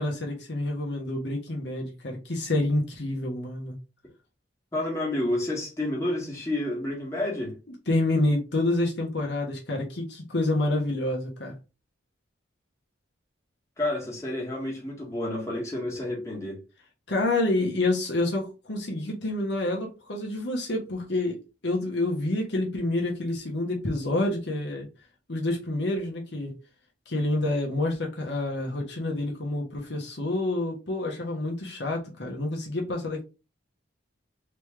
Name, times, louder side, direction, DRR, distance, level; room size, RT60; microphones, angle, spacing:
voice 1, 0.0-3.8 7.9-11.5 17.1-24.9 25.3-26.5 27.1-33.2, left 2 dB, 60° left, 1.2 m, -28 dB
voice 2, 4.7-7.6 13.8-16.6, left 1 dB, 15° left, 1.7 m, -30 dB
4.0 x 3.3 x 3.6 m
head